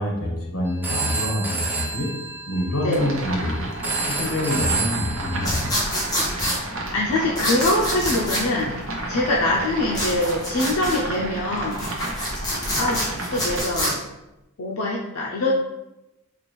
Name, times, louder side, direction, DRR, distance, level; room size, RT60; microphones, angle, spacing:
voice 1, 0.0-2.1 2.5-3.7 4.1-5.7, left 1 dB, 65° left, -1 dB, 1.2 m, -26 dB
Telephone, 0.7-6.5, right 3 dB, 10° right, 0.5 m, -30 dB
sound 1, 2.9-13.6, right 1 dB, 65° right, 0.7 m, -31 dB
sound 2, 5.4-6.6 7.3-8.4 9.9-11.0 11.6-13.9, equal, 20° left, 1.0 m, -26 dB
voice 2, 6.9-8.8 9.1-11.9 12.8-14.0 14.6-15.5, left 1 dB, 90° left, -3 dB, 0.5 m, -24 dB
4.9 x 2.5 x 3.1 m, 0.95 s
head